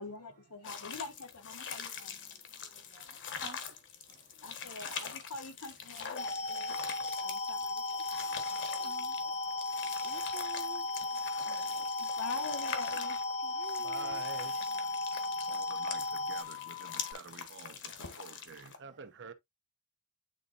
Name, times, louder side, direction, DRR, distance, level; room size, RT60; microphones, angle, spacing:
voice 1, 0.0-2.2 4.4-6.8 7.2-9.3 9.9-10.0 11.4-13.8 14.7-14.9, left 3 dB, 70° left, 1.3 m, -46 dB
sound 1, 0.6-18.8, left 7 dB, 55° left, 1.3 m, -44 dB
voice 2, 2.0-3.8 4.1-4.3 4.8-5.1 6.6-7.5 8.4-12.0 13.4-14.2, right 6 dB, 35° right, 0.5 m, -54 dB
voice 3, 4.1-4.9 6.4-6.6 7.3-7.5 8.3-8.7 9.4-10.0 11.5-11.8 12.0-12.2 13.8-19.3, right 5 dB, 55° right, 1.0 m, -51 dB
sound 2, 6.2-16.4, left 2 dB, 30° left, 0.7 m, -36 dB
sound 3, 7.1-17.1, left 16 dB, 80° right, 1.6 m, -45 dB
9.1 x 4.1 x 2.5 m
head